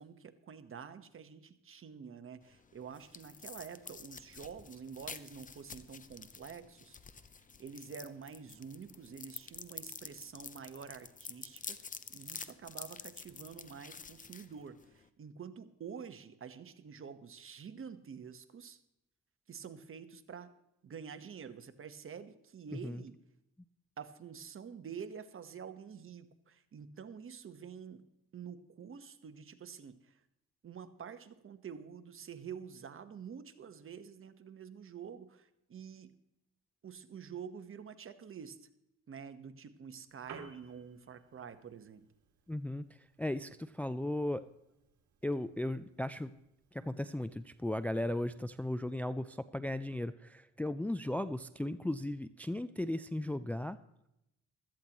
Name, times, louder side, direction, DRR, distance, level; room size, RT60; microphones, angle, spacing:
voice 1, 0.0-7.0 7.6-18.8 19.5-20.5 20.8-23.2 24.0-28.0 28.3-30.2 30.6-36.2 36.8-38.6 39.1-42.1, right 7 dB, 45° right, 10 dB, 1.2 m, -48 dB
sound 1, 2.4-15.1, left 5 dB, 25° left, 0.8 m, -49 dB
voice 2, 22.7-23.0 42.5-42.8 43.2-44.4 45.2-46.3 46.7-53.8, left 1 dB, 5° left, 12 dB, 0.4 m, -36 dB
Piano, 40.0-49.0, right 7 dB, 75° right, 2.0 m, -60 dB
16.5 x 13.5 x 3.0 m, 0.84 s
cardioid pair, 90°, 30 cm